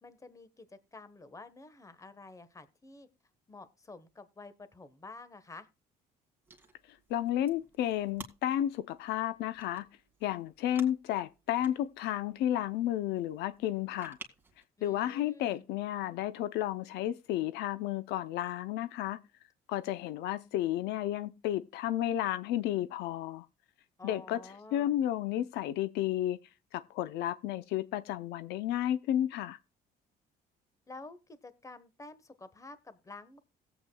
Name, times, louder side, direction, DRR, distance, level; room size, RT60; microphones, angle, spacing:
voice 1, 0.0-3.1 3.5-5.7 14.8-15.7 24.0-24.9 30.9-33.4, left 3 dB, 20° left, 1.2 m, -50 dB
sound 1, 6.4-14.6, right 3 dB, 10° right, 2.0 m, -55 dB
voice 2, 7.1-9.9 10.2-14.2 14.8-19.2 19.7-23.5 24.0-24.4 24.7-26.4 26.7-29.6, left 12 dB, 85° left, 0.6 m, -32 dB
17.5 x 8.1 x 2.2 m
cardioid pair, 110°, 17 cm